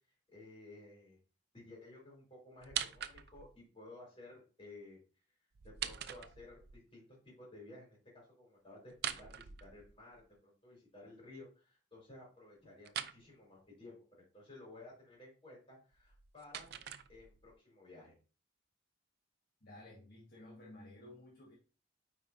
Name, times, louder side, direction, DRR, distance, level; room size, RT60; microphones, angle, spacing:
voice 1, 0.3-1.2 1.5-5.0 5.6-14.0 14.3-16.7 17.1-18.1, left 2 dB, 25° left, -2 dB, 3.3 m, -55 dB
sound 1, 2.6-3.6 5.5-6.8 8.9-10.2 12.8-13.2 15.9-17.5, right 10 dB, 50° right, 0.4 m, -43 dB
voice 2, 19.6-21.5, left 1 dB, 50° left, -4 dB, 1.6 m, -54 dB
9.0 x 4.6 x 2.7 m, 0.35 s
head